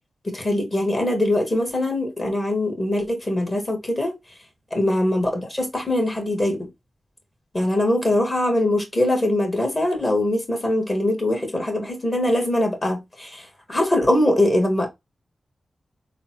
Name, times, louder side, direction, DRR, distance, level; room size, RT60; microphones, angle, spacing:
voice 1, 0.2-4.1 4.7-6.7 7.5-14.9, left 1 dB, 35° left, 1.6 m, -22 dB
3.8 x 2.1 x 2.9 m
cardioid pair, 45°, 0 cm